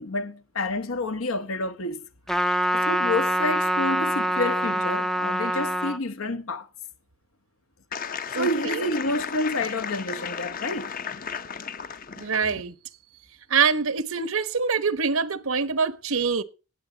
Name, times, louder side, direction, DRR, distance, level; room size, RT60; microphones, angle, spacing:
voice 1, 0.0-2.0 2.7-6.7 8.3-10.9, left 2 dB, 80° left, 1.2 m, -29 dB
Trumpet, 2.3-6.0, equal, ahead, 0.5 m, -25 dB
sound 1, 7.9-12.6, left 6 dB, 40° left, 0.8 m, -34 dB
voice 2, 8.3-8.8 12.2-12.7 13.5-16.4, right 5 dB, 80° right, 1.1 m, -25 dB
19.5 x 7.8 x 3.9 m
head